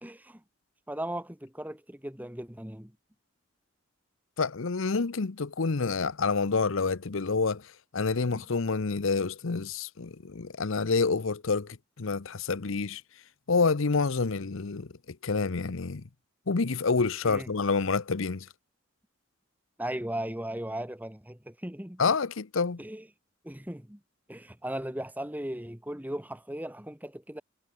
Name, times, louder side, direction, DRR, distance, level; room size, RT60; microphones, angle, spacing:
voice 1, 0.0-0.4 0.9-2.9 8.3-8.4 17.2-17.5 19.8-22.0 22.8-23.1 23.4-24.0 24.3-27.4, right 1 dB, 10° right, 1.4 m, -37 dB
voice 2, 4.4-13.0 13.5-16.0 16.5-18.5 22.0-22.8, left 4 dB, 70° left, 0.8 m, -28 dB
head